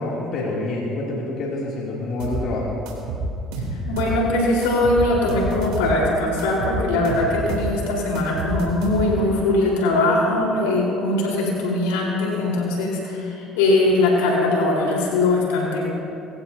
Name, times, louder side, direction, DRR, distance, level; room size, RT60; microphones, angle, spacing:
voice 1, 0.0-2.8, left 2 dB, 60° left, -5 dB, 2.8 m, -27 dB
sound 1, 2.2-2.4 2.9-4.2 4.6-6.0 6.4-7.7 8.1-9.3, right 2 dB, 80° right, 3.2 m, -28 dB
voice 2, 3.9-13.2 13.6-15.9, left 2 dB, 90° left, -3 dB, 4.2 m, -21 dB
23.0 x 16.5 x 2.8 m, 2.6 s
supercardioid pair, 80°, 0 cm